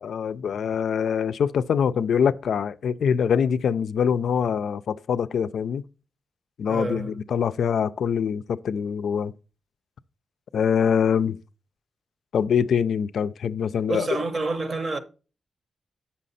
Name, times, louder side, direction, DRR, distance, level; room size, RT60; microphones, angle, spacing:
voice 1, 0.0-5.8 6.6-9.3 10.5-11.4 12.3-14.1, left 7 dB, 90° left, 0.3 m, -24 dB
voice 2, 6.7-7.2 13.9-15.0, right 3 dB, 45° right, 0.7 m, -28 dB
7.4 x 5.7 x 4.0 m
wide cardioid pair, 140°, 0 cm